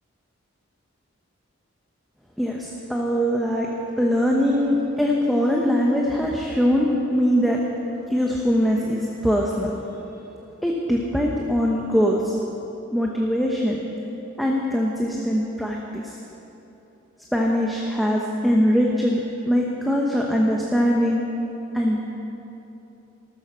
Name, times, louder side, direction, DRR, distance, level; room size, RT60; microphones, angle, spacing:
voice 1, 2.4-3.7 4.0-7.6 8.1-9.7 10.6-12.3 12.9-13.8 14.4-16.2 17.3-21.2 21.7-22.0, equal, ahead, -2 dB, 0.9 m, -22 dB
14.5 x 13.0 x 6.2 m, 2.9 s
head